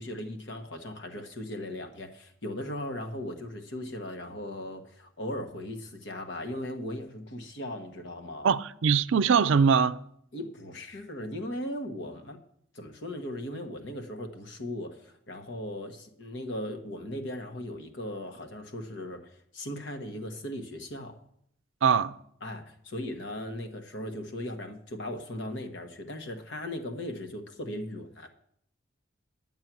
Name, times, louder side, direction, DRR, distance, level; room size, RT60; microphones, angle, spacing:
voice 1, 0.0-8.5 10.3-12.4 12.7-21.2 22.4-28.3, left 1 dB, 60° left, 1.3 m, -38 dB
voice 2, 8.4-10.0 21.8-22.1, right 6 dB, 75° right, 0.4 m, -22 dB
10.5 x 7.5 x 6.1 m
head